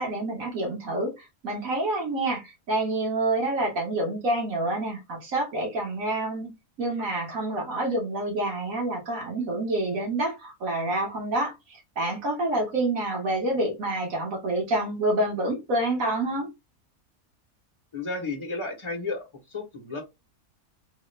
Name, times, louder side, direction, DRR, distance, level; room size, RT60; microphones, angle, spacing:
voice 1, 0.0-6.5 6.8-16.5, right 2 dB, 70° right, 1.8 m, -28 dB
voice 2, 17.9-19.2 19.5-20.0, left 3 dB, 25° left, 0.8 m, -32 dB
3.5 x 2.3 x 3.1 m
omnidirectional pair, 1.5 m